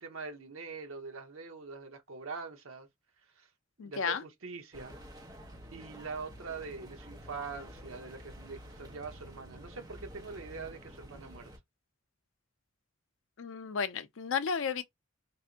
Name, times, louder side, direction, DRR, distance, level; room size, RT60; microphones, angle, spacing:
voice 1, 0.0-2.9 3.4-3.5 3.8-5.0 5.7-11.5, right 4 dB, 75° right, 0.9 m, -43 dB
voice 2, 3.8-4.2 13.4-14.8, left 6 dB, 65° left, 0.5 m, -33 dB
sound 1, 4.7-11.6, equal, 20° right, 0.8 m, -50 dB
3.3 x 2.6 x 2.7 m
head